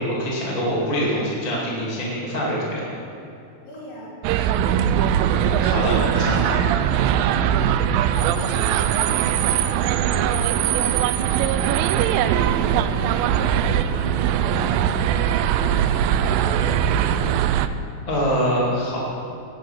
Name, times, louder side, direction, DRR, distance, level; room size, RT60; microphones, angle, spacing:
voice 1, 0.0-2.9 4.4-4.5 4.9-6.6 18.1-19.0, equal, 15° left, -6 dB, 1.5 m, -25 dB
voice 2, 3.6-4.1 7.3-7.6 8.1-11.6 11.9-17.4, left 2 dB, 70° left, -5 dB, 4.8 m, -39 dB
sound 1, 4.2-17.7, right 9 dB, 80° right, 2.1 m, -21 dB
17.5 x 7.7 x 5.8 m, 2.7 s
omnidirectional pair, 4.3 m